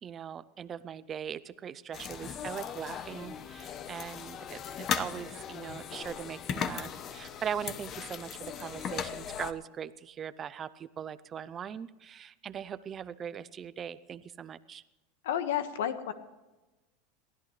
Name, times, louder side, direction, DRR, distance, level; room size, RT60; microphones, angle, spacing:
voice 1, 0.0-14.8, right 8 dB, 25° right, 15 dB, 0.6 m, -40 dB
sound 1, 1.9-9.5, left 8 dB, 35° left, 0.9 m, -38 dB
voice 2, 15.2-16.1, left 10 dB, 90° left, 10 dB, 1.5 m, -31 dB
22.5 x 15.5 x 3.3 m, 1.1 s
supercardioid pair, 145°, 0 cm